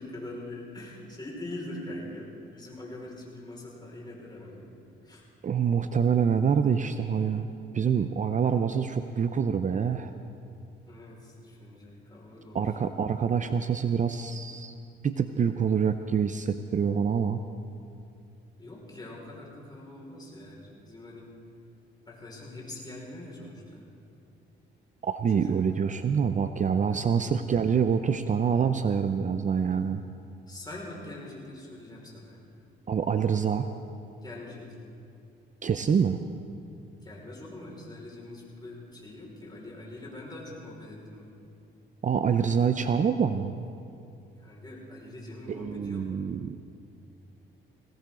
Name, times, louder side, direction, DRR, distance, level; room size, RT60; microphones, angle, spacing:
voice 1, 0.0-4.7 5.0-5.2 10.9-12.6 18.6-21.3 22.1-23.9 25.3-25.6 26.9-27.1 30.5-32.4 34.2-34.8 37.0-41.3 44.4-46.1, left 1 dB, 20° left, -3 dB, 5.3 m, -43 dB
voice 2, 5.4-7.5 7.7-10.1 12.5-14.7 15.0-17.4 25.0-30.0 32.9-33.7 35.6-36.2 42.0-43.6 45.5-46.6, right 7 dB, 40° right, 9 dB, 0.6 m, -26 dB
20.5 x 18.0 x 3.9 m, 2.6 s
cardioid pair, 90°, 20 cm